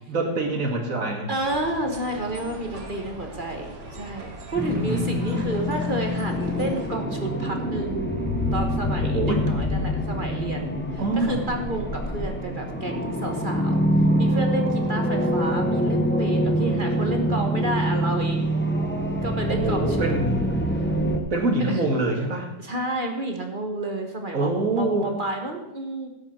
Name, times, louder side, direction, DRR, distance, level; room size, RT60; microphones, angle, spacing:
voice 1, 0.1-1.3 4.7-5.5 9.0-9.5 11.0-11.4 19.5-20.5 21.3-22.5 24.3-25.1, right 2 dB, 45° right, 2 dB, 2.3 m, -25 dB
voice 2, 1.3-8.2 8.5-13.8 14.2-18.5 19.2-20.1 21.7-21.8 22.6-26.1, right 1 dB, 30° right, 4 dB, 1.3 m, -30 dB
sound 1, 1.4-6.9, right 2 dB, 60° right, 2.1 m, -40 dB
sound 2, 4.5-21.2, equal, 10° left, 0.7 m, -25 dB
17.0 x 7.8 x 4.4 m, 0.97 s
omnidirectional pair, 2.0 m